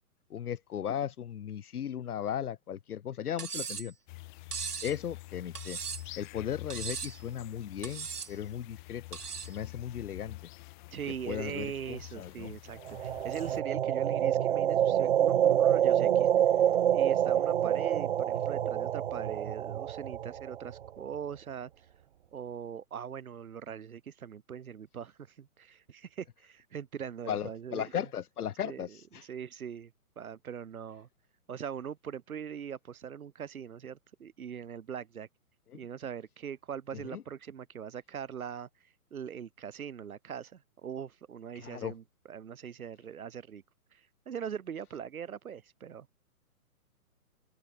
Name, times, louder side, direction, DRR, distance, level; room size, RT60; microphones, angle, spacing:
voice 1, 0.3-3.9 4.8-5.8 6.2-9.2 9.5-10.4 11.3-12.5 27.3-29.3 35.7-35.8 37.1-37.2 41.5-41.9, left 9 dB, 75° left, 1.0 m, -36 dB
Cutlery silverware, 3.4-3.9 4.5-5.0 5.6-6.2 6.7-7.2 7.8-8.3 9.1-9.6, right 6 dB, 85° right, 2.8 m, -38 dB
sound 1, 4.1-13.6, left 22 dB, 30° left, 5.1 m, -47 dB
voice 2, 10.9-16.3 16.9-21.7 22.3-28.0 28.6-29.0 29.2-31.1 31.5-35.3 35.7-38.7 39.1-43.6 43.9-46.1, right 8 dB, 65° right, 4.6 m, -41 dB
sound 2, 12.9-20.9, right 10 dB, 45° right, 0.5 m, -27 dB
hypercardioid pair, 150°, 45 cm